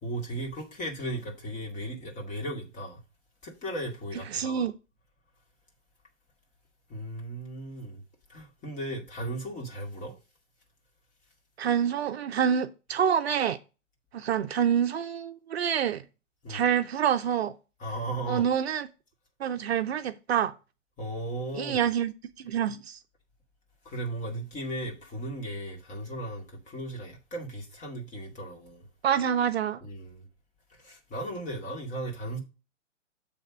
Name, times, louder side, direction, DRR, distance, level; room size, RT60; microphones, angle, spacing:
voice 1, 0.0-3.0 3.4-4.7 6.9-8.0 8.3-10.2 16.4-16.7 17.8-18.5 21.0-21.8 23.8-28.9 29.8-30.3 30.7-32.4, right 1 dB, 20° left, 2.2 m, -36 dB
voice 2, 4.3-4.7 11.6-13.6 14.1-16.0 16.5-17.5 18.3-18.9 19.4-20.5 21.5-23.0 29.0-29.8, right 8 dB, 55° right, 0.7 m, -27 dB
7.8 x 3.5 x 6.2 m
hypercardioid pair, 130°, 38 cm